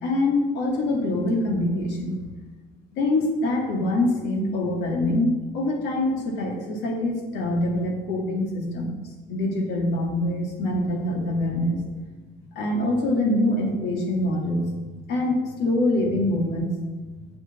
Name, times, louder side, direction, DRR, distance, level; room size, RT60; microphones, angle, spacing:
voice 1, 0.0-2.2 2.9-9.0 9.3-11.8 12.5-14.7 15.1-16.7, left 1 dB, 90° left, 1 dB, 2.2 m, -24 dB
7.0 x 6.7 x 7.2 m, 1.2 s
cardioid pair, 110°, 17 cm